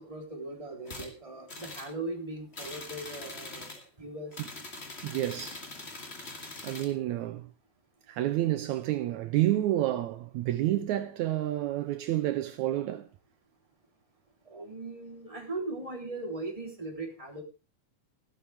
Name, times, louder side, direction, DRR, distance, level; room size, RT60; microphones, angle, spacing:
voice 1, 0.0-4.4 14.4-17.4, right 2 dB, 10° right, 3.2 m, -39 dB
sound 1, 0.9-1.1 1.5-1.9 2.5-3.8 4.3-6.9, left 2 dB, 25° left, 2.2 m, -43 dB
voice 2, 5.0-5.6 6.6-7.5 8.1-13.1, right 14 dB, 75° right, 2.0 m, -29 dB
15.0 x 12.5 x 3.4 m
omnidirectional pair, 3.5 m